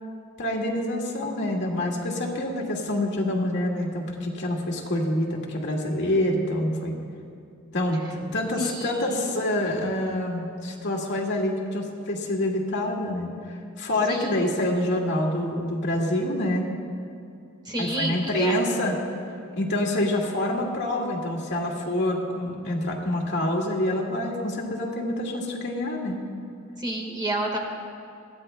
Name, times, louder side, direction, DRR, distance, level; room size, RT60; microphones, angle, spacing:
voice 1, 0.4-6.9 7.7-8.0 8.3-13.3 13.8-16.7 17.8-19.0 19.5-26.2, left 1 dB, 60° left, -1 dB, 1.9 m, -26 dB
voice 2, 8.6-9.4 14.1-14.5 17.6-18.6 26.8-27.6, right 1 dB, 20° right, 0 dB, 1.5 m, -30 dB
22.0 x 15.5 x 2.2 m, 2.5 s
head